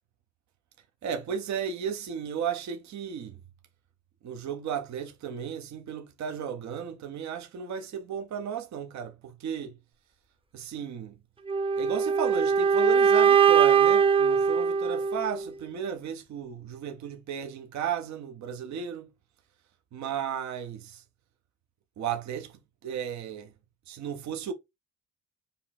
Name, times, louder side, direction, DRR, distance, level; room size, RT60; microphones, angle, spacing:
voice 1, 1.0-3.4 4.2-9.7 10.5-11.2 11.8-19.1 19.9-21.0 22.0-23.5 23.9-24.5, right 8 dB, 65° right, 0.9 m, -34 dB
sound 1, 11.5-15.5, right 7 dB, 20° right, 0.7 m, -21 dB
5.2 x 2.5 x 4.1 m
cardioid pair, 90°, 30 cm